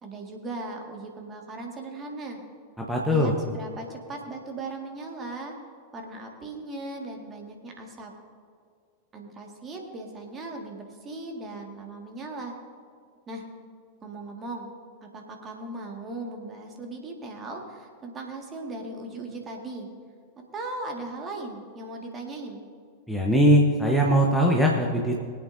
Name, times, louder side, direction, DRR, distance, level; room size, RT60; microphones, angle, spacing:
voice 1, 0.0-2.4 3.1-5.5 5.9-8.1 9.1-12.5 13.3-13.4 14.0-14.7 15.1-19.9 20.5-22.6, right 2 dB, 25° right, 1 dB, 2.0 m, -38 dB
voice 2, 2.8-3.3 23.1-25.2, equal, ahead, -2 dB, 1.2 m, -21 dB
23.5 x 8.8 x 2.7 m, 2.1 s
figure-of-eight pair, 90°, 0 cm